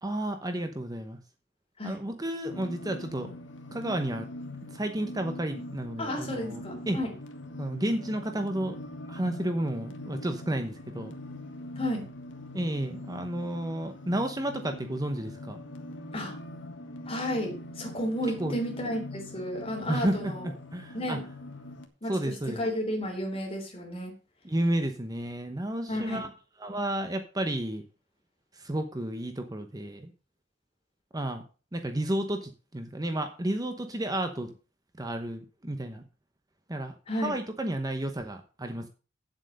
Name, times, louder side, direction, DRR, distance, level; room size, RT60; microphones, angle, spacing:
voice 1, 0.0-1.2 1.8-3.3 3.7-4.3 4.7-7.0 7.6-8.8 9.1-11.2 12.5-15.6 18.4-18.6 19.9-21.2 22.1-22.6 24.4-26.3 26.6-27.8 28.5-30.1 31.1-31.4 31.7-34.5 35.0-36.0 36.7-36.9 37.2-38.9, right 1 dB, 20° right, 7 dB, 0.9 m, -32 dB
sound 1, 2.5-21.9, left 1 dB, 80° left, 1.6 m, -42 dB
voice 2, 6.0-7.1 11.8-12.0 16.1-16.4 17.1-20.4 20.9-21.2 22.0-24.1 25.9-26.2 37.1-37.4, equal, 30° left, 2 dB, 3.5 m, -32 dB
9.0 x 7.7 x 5.3 m, 0.35 s
head